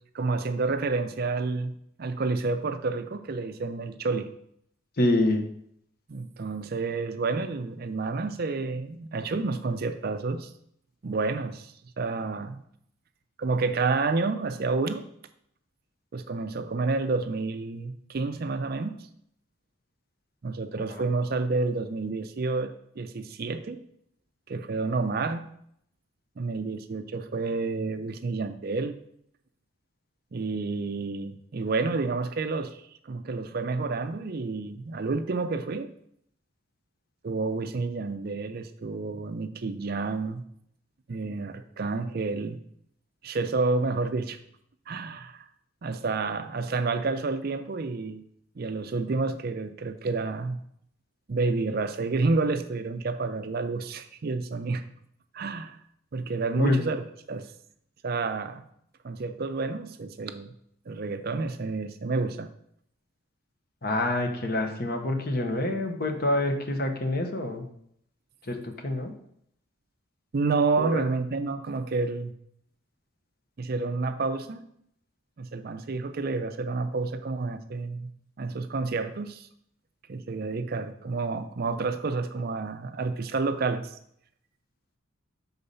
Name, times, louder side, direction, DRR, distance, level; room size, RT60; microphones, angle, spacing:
voice 1, 0.1-4.3 6.1-10.5 11.0-12.6 13.4-15.0 16.1-19.0 20.4-23.8 24.5-25.5 26.4-28.9 30.3-35.9 37.2-40.4 41.1-42.6 43.2-44.4 44.9-45.4 45.8-48.2 48.6-50.6 51.3-54.8 55.3-55.8 56.1-57.5 58.0-58.6 59.0-60.5 60.9-62.5 70.3-72.3 73.6-74.6 75.4-78.1 78.4-79.5 80.1-84.0, right 3 dB, 45° right, 10 dB, 0.4 m, -29 dB
voice 2, 5.0-5.4 20.8-21.0 56.5-56.8 63.8-67.6 68.5-69.1 70.8-71.1, left 1 dB, 45° left, 5 dB, 1.0 m, -26 dB
6.7 x 4.0 x 5.4 m, 0.70 s
head